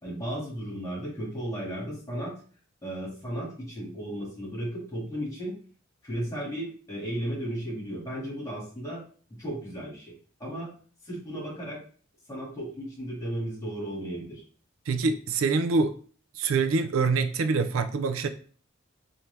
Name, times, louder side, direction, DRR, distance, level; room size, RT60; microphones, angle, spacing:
voice 1, 0.0-2.4 2.8-5.5 6.0-9.0 9.4-10.1 10.4-10.8 11.0-11.8 12.3-14.4, right 1 dB, 15° left, -5 dB, 2.0 m, -35 dB
voice 2, 14.9-15.9 16.4-18.3, right 4 dB, 80° right, 10 dB, 0.4 m, -25 dB
4.5 x 2.7 x 3.2 m, 0.43 s
head